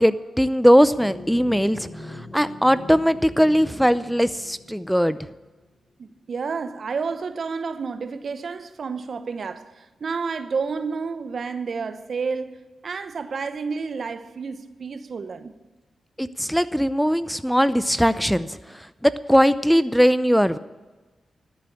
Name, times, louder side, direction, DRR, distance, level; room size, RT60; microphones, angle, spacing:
voice 1, 0.0-5.2 16.2-18.5 19.0-20.6, equal, ahead, 0.6 m, -19 dB
sound 1, 1.0-5.6, left 2 dB, 20° left, 4.2 m, -42 dB
voice 2, 6.0-15.5, right 5 dB, 65° right, 0.9 m, -30 dB
13.5 x 7.5 x 8.4 m
supercardioid pair, 40°, 0 cm